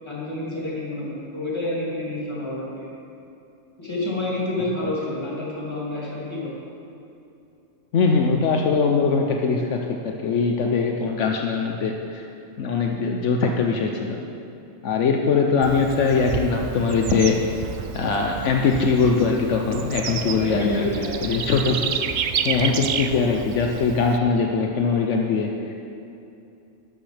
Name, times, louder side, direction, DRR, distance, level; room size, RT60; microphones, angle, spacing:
voice 1, 0.0-2.9 3.8-6.5 20.0-21.2, left 2 dB, 20° left, -7 dB, 2.8 m, -29 dB
voice 2, 7.9-12.2 12.6-14.2 14.8-17.4 17.9-20.9 21.2-22.0 22.4-25.5, left 5 dB, 75° left, 1 dB, 1.1 m, -21 dB
Bird / Insect, 15.6-24.2, right 7 dB, 60° right, 0.5 m, -30 dB
12.5 x 12.0 x 3.4 m, 2.7 s
omnidirectional pair, 1.3 m